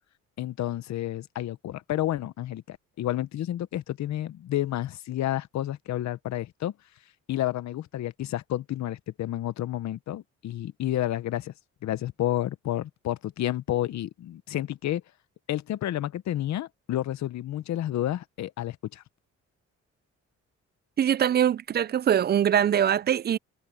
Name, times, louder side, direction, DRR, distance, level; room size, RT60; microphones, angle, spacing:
voice 1, 0.4-6.7 7.3-11.5 11.8-15.0 15.5-19.0, left 13 dB, 65° left, 0.9 m, -30 dB
voice 2, 21.0-23.4, right 9 dB, 35° right, 0.4 m, -23 dB
cardioid pair, 90°, 30 cm